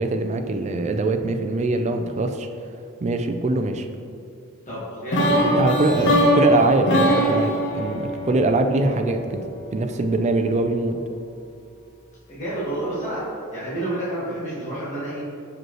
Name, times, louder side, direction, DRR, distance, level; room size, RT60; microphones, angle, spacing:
voice 1, 0.0-2.5 3.0-3.9 5.5-9.4 9.7-11.0, right 2 dB, 30° right, 6 dB, 0.4 m, -23 dB
voice 2, 4.7-5.6 12.3-15.2, right 1 dB, 35° left, -11 dB, 1.5 m, -29 dB
sound 1, 5.1-9.1, equal, 55° left, 0.8 m, -21 dB
6.2 x 5.0 x 3.0 m, 2.5 s
head